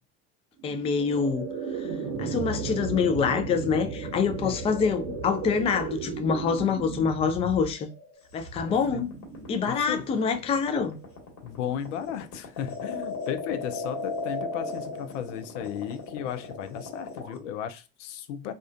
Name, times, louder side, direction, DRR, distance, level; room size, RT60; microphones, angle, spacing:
voice 1, 0.6-1.5 2.2-7.9 8.3-9.1 9.5-11.0, left 6 dB, 20° left, 0.3 m, -26 dB
sound 1, 0.6-11.7, right 5 dB, 55° right, 0.7 m, -36 dB
sound 2, 8.4-17.4, left 3 dB, 50° left, 1.3 m, -35 dB
voice 2, 8.7-9.0 9.7-10.0 11.4-18.5, left 9 dB, 80° left, 0.5 m, -35 dB
2.3 x 2.2 x 2.4 m
hypercardioid pair, 85°, 36 cm